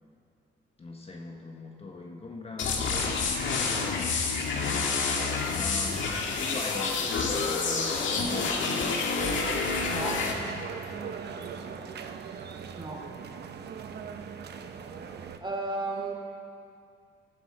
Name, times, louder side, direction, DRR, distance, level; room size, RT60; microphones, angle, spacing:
voice 1, 0.8-3.2 4.5-6.1 6.4-8.8 11.3-12.0, left 3 dB, 30° left, 1 dB, 1.3 m, -41 dB
sound 1, 2.6-10.3, left 4 dB, 70° left, 1.9 m, -28 dB
sound 2, 9.2-15.4, right 6 dB, 55° right, 0.9 m, -40 dB
voice 2, 9.8-10.3 12.7-13.0 15.4-16.1, right 2 dB, 25° right, 0 dB, 3.0 m, -33 dB
19.5 x 11.0 x 4.5 m, 2.3 s
cardioid pair, 90°, 20 cm